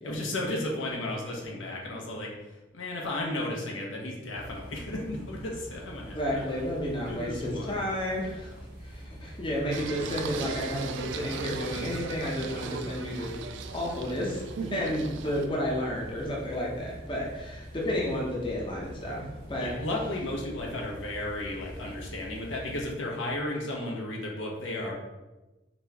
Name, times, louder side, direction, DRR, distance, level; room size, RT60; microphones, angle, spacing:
voice 1, 0.0-6.5 7.1-7.8 14.8-14.9 19.6-24.9, left 1 dB, 85° left, -1 dB, 0.9 m, -34 dB
sound 1, 4.4-22.9, equal, 50° right, 1.3 m, -45 dB
voice 2, 6.2-13.3 13.7-19.7, left 1 dB, 25° left, -3 dB, 0.7 m, -32 dB
Singing, 9.7-15.5, right 5 dB, 70° right, 0.3 m, -38 dB
4.1 x 2.8 x 3.4 m, 1.1 s
head